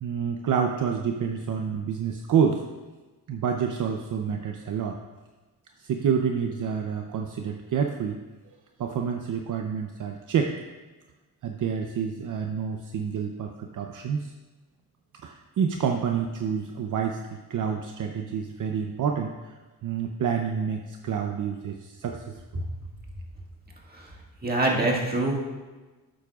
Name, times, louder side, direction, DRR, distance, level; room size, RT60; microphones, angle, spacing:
voice 1, 0.0-2.6 3.3-5.0 5.8-8.2 8.8-10.5 11.4-14.3 15.2-19.5 19.8-22.6, right 7 dB, 60° right, 3 dB, 0.7 m, -28 dB
voice 2, 24.4-25.4, right 2 dB, 25° right, -2 dB, 1.9 m, -24 dB
12.0 x 8.7 x 2.4 m, 1.2 s
cardioid pair, 105°, 36 cm